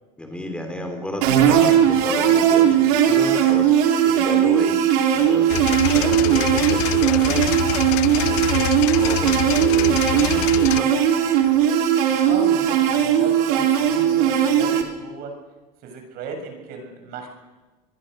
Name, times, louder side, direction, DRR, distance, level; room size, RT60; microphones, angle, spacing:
voice 1, 0.2-3.7 4.0-4.7 5.1-10.9, left 1 dB, 5° left, 4 dB, 3.3 m, -33 dB
sound 1, 1.2-14.8, right 9 dB, 75° right, 3.8 m, -18 dB
sound 2, 5.5-10.8, left 18 dB, 70° left, 0.9 m, -26 dB
voice 2, 12.3-15.3 15.8-17.3, right 5 dB, 55° right, 4 dB, 7.3 m, -35 dB
26.0 x 23.0 x 6.6 m, 1.2 s
cardioid pair, 145°, 19 cm